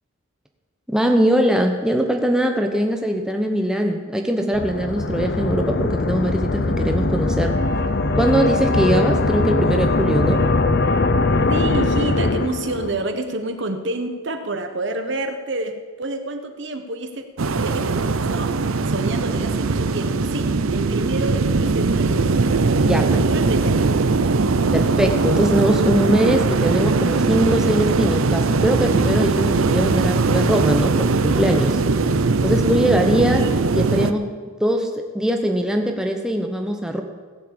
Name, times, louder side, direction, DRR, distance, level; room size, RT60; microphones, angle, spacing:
voice 1, 0.9-7.6 8.2-10.4 22.8-23.0 24.7-31.8 32.4-33.4 33.8-34.3 34.6-37.0, right 1 dB, 5° right, 3 dB, 0.9 m, -21 dB
sound 1, 4.5-13.0, left 2 dB, 50° left, 0.8 m, -21 dB
voice 2, 11.5-17.2 17.6-22.3 23.0-24.1 33.3-33.6, right 2 dB, 55° right, 7 dB, 1.3 m, -28 dB
sound 2, 17.4-34.1, right 3 dB, 80° right, 0.7 m, -20 dB
16.5 x 7.4 x 8.8 m, 1.4 s
head